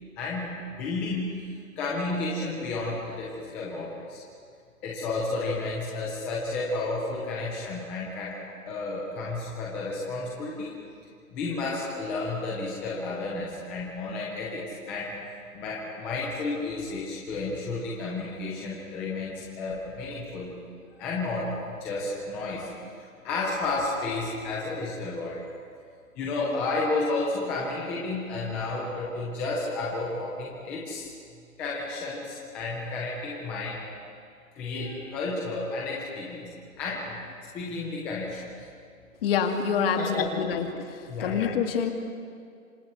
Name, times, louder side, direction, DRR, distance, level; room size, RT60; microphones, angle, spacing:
voice 1, 0.2-1.4 1.8-4.2 4.8-10.7 11.3-15.1 15.5-20.6 21.0-22.7 23.2-25.4 26.2-31.1 31.6-33.8 34.5-36.5 36.8-37.2 37.5-38.5 40.0-40.4 41.1-41.4, left 3 dB, 5° left, -4 dB, 0.5 m, -32 dB
voice 2, 39.2-40.7 41.2-41.9, left 7 dB, 40° left, 5 dB, 2.1 m, -26 dB
26.0 x 25.0 x 4.4 m, 2.2 s
hypercardioid pair, 155°, 42 cm